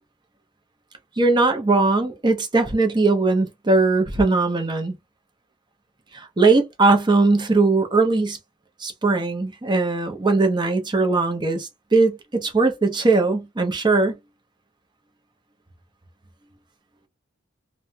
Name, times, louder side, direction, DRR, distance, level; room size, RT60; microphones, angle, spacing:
voice 1, 1.2-4.9 6.1-8.4 8.8-14.2, right 3 dB, 20° right, 0.7 m, -20 dB
3.0 x 2.2 x 2.7 m
head